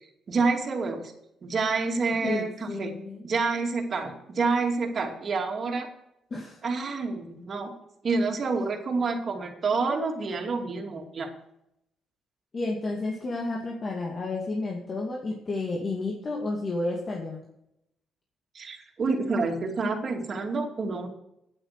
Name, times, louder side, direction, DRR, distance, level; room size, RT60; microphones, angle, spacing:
voice 1, 0.3-1.1 1.4-2.9 3.2-5.9 6.6-7.7 8.0-11.3 18.5-21.1, right 4 dB, 45° right, 2 dB, 2.5 m, -28 dB
voice 2, 2.2-3.2 6.3-6.6 12.5-17.4, left 2 dB, 40° left, -2 dB, 2.2 m, -31 dB
9.4 x 8.8 x 6.6 m, 0.80 s
cardioid pair, 90°, 0 cm